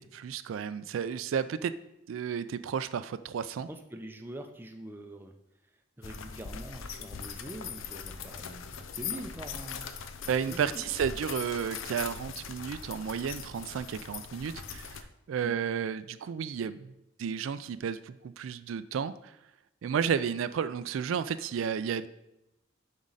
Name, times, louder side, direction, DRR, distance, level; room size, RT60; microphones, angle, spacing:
voice 1, 0.0-1.7 2.1-3.7 10.3-16.9 17.2-19.3 19.8-22.1, right 7 dB, 80° right, 13 dB, 0.3 m, -32 dB
voice 2, 3.7-5.3 6.0-9.9 10.5-10.9 15.4-15.6, right 1 dB, 10° right, 5 dB, 0.5 m, -44 dB
sound 1, 6.0-15.0, left 6 dB, 80° left, 0.6 m, -41 dB
7.2 x 5.3 x 3.9 m, 0.88 s
head